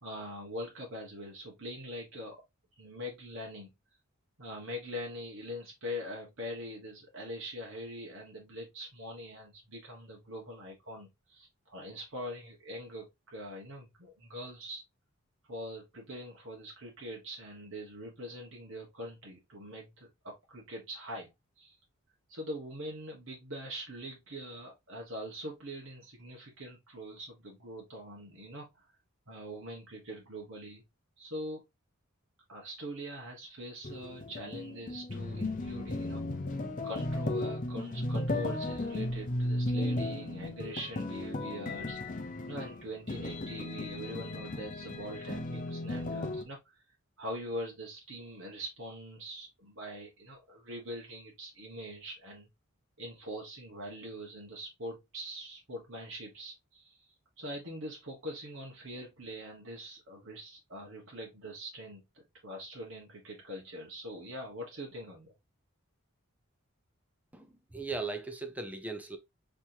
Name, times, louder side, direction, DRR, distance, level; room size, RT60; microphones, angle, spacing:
voice 1, 0.0-2.4 2.8-3.7 4.4-14.8 15.5-21.3 21.6-21.7 22.3-28.9 29.3-30.8 31.2-31.6 32.5-36.2 36.8-42.0 42.5-46.8 47.2-52.5 53.0-62.0 62.4-65.3, equal, 65° right, 1.3 m, -43 dB
sound 1, 33.8-46.4, left 1 dB, 35° left, 0.7 m, -35 dB
voice 2, 67.3-69.2, right 3 dB, 5° right, 0.5 m, -38 dB
5.8 x 3.0 x 2.7 m
head